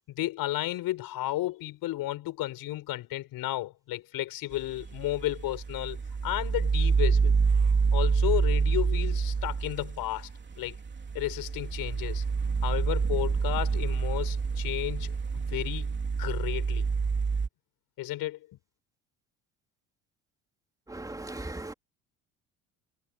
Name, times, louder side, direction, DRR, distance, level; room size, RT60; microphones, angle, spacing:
voice 1, 0.1-7.3 7.9-10.3 10.6-10.8 11.1-12.2 12.6-15.9 16.2-16.9 18.0-18.5, left 16 dB, 65° left, 5.6 m, -33 dB
sound 1, 4.6-17.5, right 5 dB, 30° right, 3.4 m, -27 dB
voice 2, 20.9-21.7, right 2 dB, 10° right, 2.8 m, -38 dB
hypercardioid pair, 70°, 37 cm